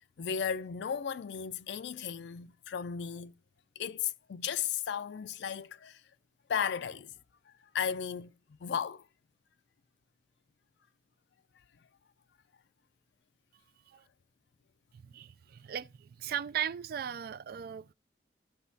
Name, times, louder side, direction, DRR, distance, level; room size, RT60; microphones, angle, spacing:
voice 1, 0.2-3.3 3.8-6.0 6.5-7.1 7.7-8.3 8.6-9.0, left 7 dB, 75° left, 0.4 m, -35 dB
voice 2, 14.9-17.9, right 9 dB, 60° right, 0.3 m, -37 dB
14.0 x 6.0 x 2.7 m
head